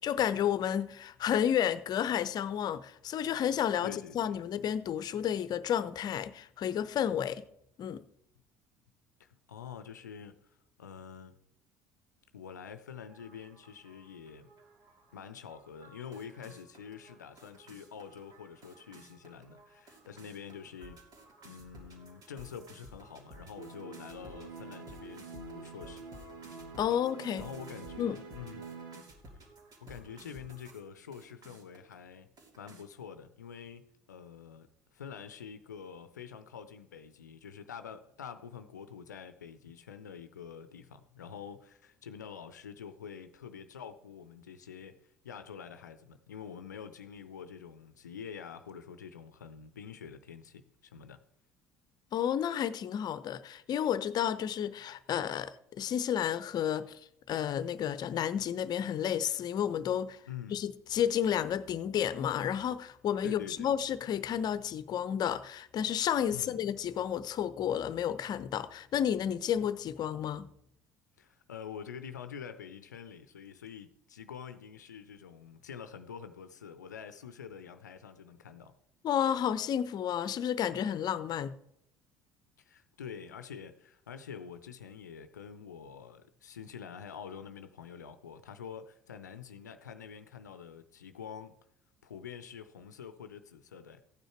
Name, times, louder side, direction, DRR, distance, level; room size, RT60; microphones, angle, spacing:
voice 1, 0.0-7.5 7.8-8.0 26.8-27.5 28.0-28.2 52.1-57.0 57.3-60.2 60.5-70.5 79.0-81.5, left 9 dB, 45° left, 0.8 m, -31 dB
voice 2, 3.8-4.4 9.2-11.4 12.3-14.5 15.1-21.0 21.4-26.0 27.4-28.7 29.8-32.3 32.6-34.7 34.9-45.0 45.2-51.2 60.3-60.6 63.2-63.7 66.3-66.6 71.2-78.7 82.6-91.5 92.0-94.0, left 7 dB, 85° left, 0.6 m, -46 dB
sound 1, 13.1-30.8 31.1-31.9 32.4-32.8, right 1 dB, 45° right, 2.8 m, -55 dB
sound 2, 23.6-29.0, right 4 dB, 75° right, 1.4 m, -47 dB
15.0 x 9.1 x 4.5 m
figure-of-eight pair, 60°, 9 cm